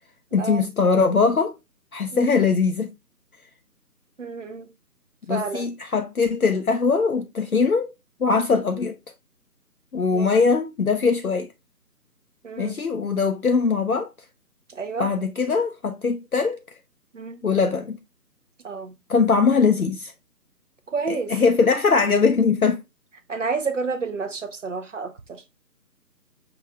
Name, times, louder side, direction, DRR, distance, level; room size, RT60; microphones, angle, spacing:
voice 1, 0.3-1.6 1.9-2.9 5.3-7.9 8.2-8.9 9.9-11.5 12.6-14.1 15.0-16.6 17.4-18.0 19.1-20.1 21.1-22.8, left 5 dB, 60° left, 0.7 m, -21 dB
voice 2, 4.2-4.7 5.3-5.7 10.1-10.3 12.4-12.8 14.7-15.1 17.1-17.4 18.6-18.9 20.9-21.3 23.3-25.4, right 4 dB, 50° right, 0.7 m, -30 dB
5.7 x 2.6 x 3.1 m
figure-of-eight pair, 155°, 49 cm